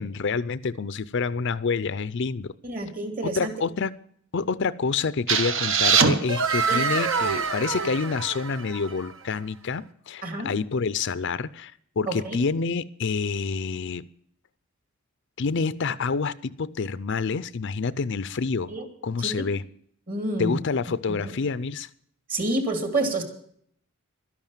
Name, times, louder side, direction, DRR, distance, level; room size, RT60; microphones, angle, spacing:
voice 1, 0.0-2.5 3.2-3.9 4.3-14.0 15.4-18.7 19.0-19.6 20.4-21.9, left 4 dB, 55° left, 0.5 m, -28 dB
voice 2, 2.6-3.5 6.7-6.8 10.2-10.5 12.1-12.4 18.7-18.8 19.2-19.5 20.1-20.6 21.2-21.3 22.3-23.2, right 2 dB, 40° right, 2.8 m, -28 dB
sound 1, 5.3-9.0, right 5 dB, 60° right, 1.1 m, -24 dB
12.5 x 10.5 x 7.2 m
head